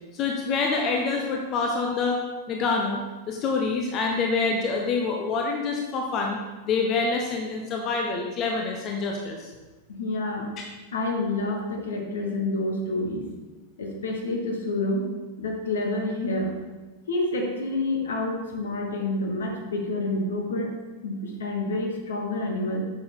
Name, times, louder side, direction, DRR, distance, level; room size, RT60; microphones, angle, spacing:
voice 1, 0.1-2.2 2.5-6.4 6.6-9.5, left 4 dB, 35° left, 1 dB, 0.9 m, -26 dB
voice 2, 9.9-10.5 10.9-13.2 13.8-15.1 15.4-16.6 17.1-20.7 21.0-22.8, left 2 dB, 65° left, 1 dB, 1.5 m, -28 dB
8.7 x 6.2 x 3.8 m, 1.2 s
figure-of-eight pair, 90°, 0 cm